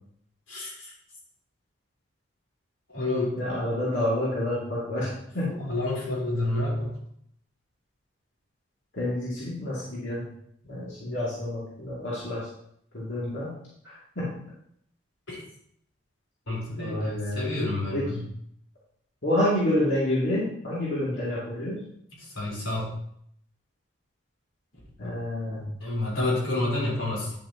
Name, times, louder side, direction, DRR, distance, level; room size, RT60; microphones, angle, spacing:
voice 1, 0.5-0.9 2.9-3.4 5.6-6.9 16.5-18.2 22.3-22.9 25.8-27.3, left 2 dB, 85° left, -4 dB, 3.8 m, -29 dB
voice 2, 3.4-5.6 8.9-10.3 10.6-12.5 12.9-13.5 13.8-14.3 16.8-17.4 17.9-18.0 19.2-21.8 25.0-25.6, left 1 dB, 60° left, -8 dB, 2.7 m, -28 dB
10.0 x 7.6 x 3.0 m, 0.69 s
head